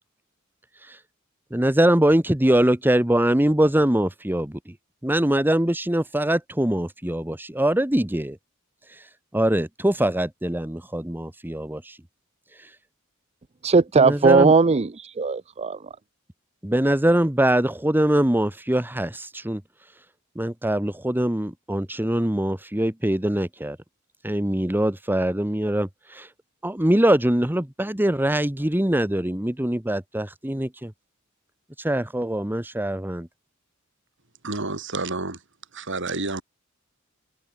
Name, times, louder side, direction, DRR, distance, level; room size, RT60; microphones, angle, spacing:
voice 1, 1.5-4.6 5.0-8.4 9.3-12.0 14.0-14.5 16.6-19.6 20.4-23.8 24.2-26.3 26.6-30.9 31.8-33.3, right 1 dB, 10° right, 1.2 m, -23 dB
voice 2, 13.6-15.8, right 4 dB, 30° right, 0.5 m, -18 dB
voice 3, 34.4-35.4 35.7-36.4, right 3 dB, 60° right, 4.5 m, -29 dB
head